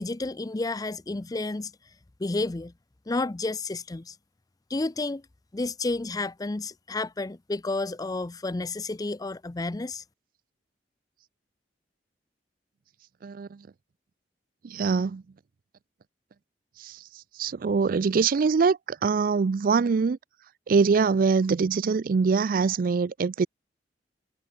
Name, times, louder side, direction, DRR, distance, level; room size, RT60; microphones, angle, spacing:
voice 1, 0.0-1.7 2.2-2.7 3.1-4.1 4.7-5.2 5.5-10.0, left 2 dB, 20° left, 0.5 m, -31 dB
voice 2, 13.2-13.6 14.6-15.2 16.8-17.0 17.4-20.2 20.7-23.5, right 5 dB, 50° right, 0.4 m, -23 dB
head